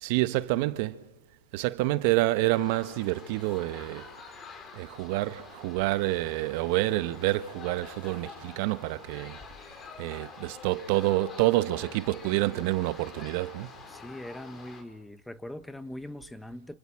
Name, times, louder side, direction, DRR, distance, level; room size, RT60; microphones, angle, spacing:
voice 1, 0.0-1.0 1.5-4.0 4.8-9.4 10.0-13.7, right 18 dB, 50° right, 1.3 m, -28 dB
sound 1, 2.5-14.8, left 4 dB, 20° left, 4.0 m, -47 dB
voice 2, 13.9-16.8, left 1 dB, 5° left, 1.1 m, -41 dB
30.0 x 28.5 x 6.3 m
hypercardioid pair, 125°, 0 cm